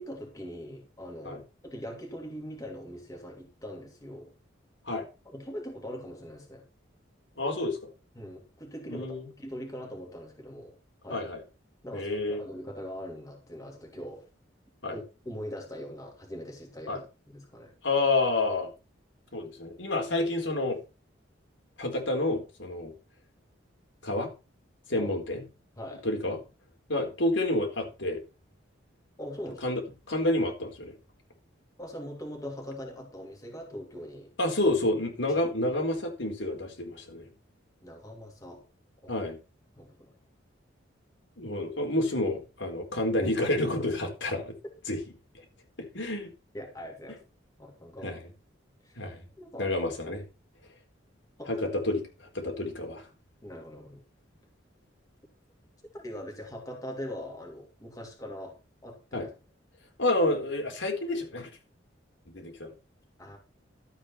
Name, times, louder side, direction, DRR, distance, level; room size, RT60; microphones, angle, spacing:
voice 1, 0.0-4.3 5.3-6.6 8.1-10.8 11.0-11.2 11.8-14.2 14.9-17.7 25.0-25.1 25.8-26.1 29.2-29.7 31.8-34.3 35.3-35.4 37.8-38.6 39.0-39.2 39.8-40.2 46.5-47.2 47.6-48.2 48.8-49.1 49.4-49.7 51.4-51.6 53.4-54.0 55.9-58.6 58.8-59.3 63.2-63.4, equal, 20° left, 1 dB, 2.8 m, -41 dB
voice 2, 7.4-7.8 8.9-9.3 11.1-11.4 11.9-12.4 14.8-15.0 16.9-17.0 17.8-18.7 19.3-20.8 21.8-22.9 24.0-24.3 24.9-25.4 26.0-26.4 26.9-28.2 29.6-29.8 30.1-30.9 34.4-37.3 39.1-39.4 41.4-44.5 44.9-45.0 45.3-45.4 45.8-46.3 48.0-48.2 49.0-49.2 49.6-50.2 51.5-53.1 59.1-59.3 60.0-61.5 62.3-62.7, left 2 dB, 75° left, 2 dB, 4.2 m, -29 dB
12.5 x 8.6 x 4.4 m, 0.30 s
head